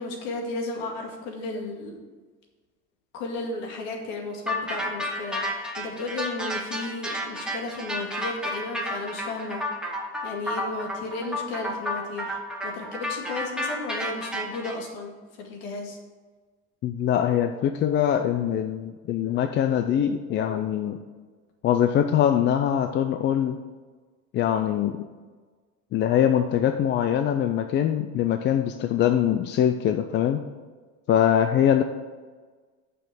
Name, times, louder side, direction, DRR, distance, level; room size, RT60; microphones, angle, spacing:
voice 1, 0.0-2.0 3.1-9.6 10.2-12.4 12.6-16.0, left 3 dB, 80° left, 1 dB, 2.2 m, -34 dB
sound 1, 4.5-14.7, equal, 5° right, 1.2 m, -31 dB
voice 2, 16.8-21.0 21.6-23.6 24.3-25.0 25.9-30.4 31.1-31.8, left 9 dB, 35° left, 7 dB, 0.4 m, -23 dB
6.7 x 6.1 x 6.9 m, 1.4 s
cardioid pair, 150°, 31 cm